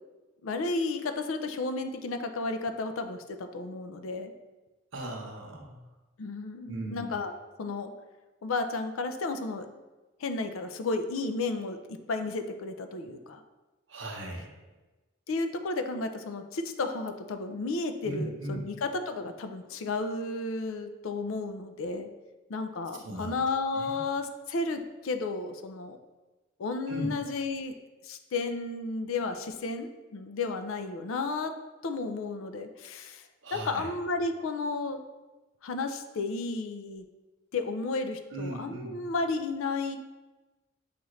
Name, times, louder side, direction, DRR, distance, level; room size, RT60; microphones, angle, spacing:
voice 1, 0.4-4.3 6.2-7.3 7.6-7.9 8.4-9.7 10.2-13.4 15.3-22.1 22.5-26.0 26.6-27.7 28.0-31.5 31.8-33.2 33.5-35.0 35.6-37.0 37.5-40.0, left 3 dB, 70° left, 8 dB, 0.4 m, -33 dB
voice 2, 4.9-5.9 6.7-7.1 13.9-14.5 18.0-18.7 23.0-23.4 23.7-24.0 26.9-27.1 33.4-33.9 38.3-39.0, right 1 dB, 60° right, 0 dB, 0.9 m, -37 dB
6.9 x 2.5 x 3.1 m, 1.1 s
head